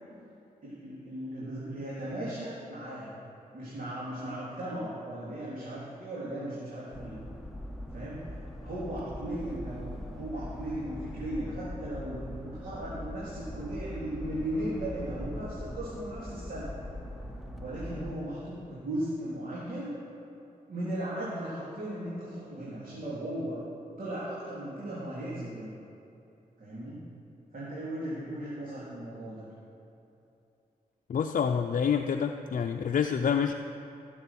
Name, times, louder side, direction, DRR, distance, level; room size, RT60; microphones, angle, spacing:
voice 1, 0.6-3.1 3.5-7.2 7.9-8.2 8.6-16.7 17.6-20.0 20.7-23.6 24.0-25.7 26.6-27.0 27.5-29.4, right 1 dB, 65° right, -9 dB, 3.5 m, -37 dB
sound 1, 6.9-18.2, left 1 dB, ahead, 1.2 m, -41 dB
voice 2, 31.1-33.5, left 7 dB, 55° left, 5 dB, 0.5 m, -27 dB
16.0 x 7.7 x 5.9 m, 2.8 s
cardioid pair, 60°, 16 cm